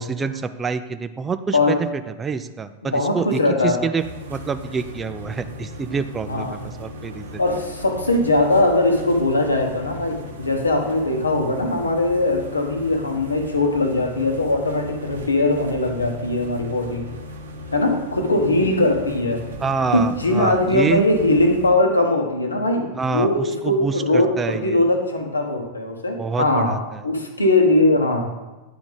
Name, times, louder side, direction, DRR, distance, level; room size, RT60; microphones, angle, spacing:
voice 1, 0.0-1.9 2.2-4.0 4.3-7.4 19.6-21.0 23.0-24.8 26.2-27.0, right 5 dB, 20° right, 11 dB, 0.3 m, -27 dB
voice 2, 2.8-3.8 6.3-6.6 7.4-17.1 17.7-19.4 19.9-26.8 27.0-28.3, left 2 dB, 80° left, 4 dB, 0.9 m, -20 dB
sound 1, 4.0-21.7, left 1 dB, 70° right, 0.9 m, -37 dB
9.3 x 3.4 x 4.0 m, 1.1 s
figure-of-eight pair, 90°, 0 cm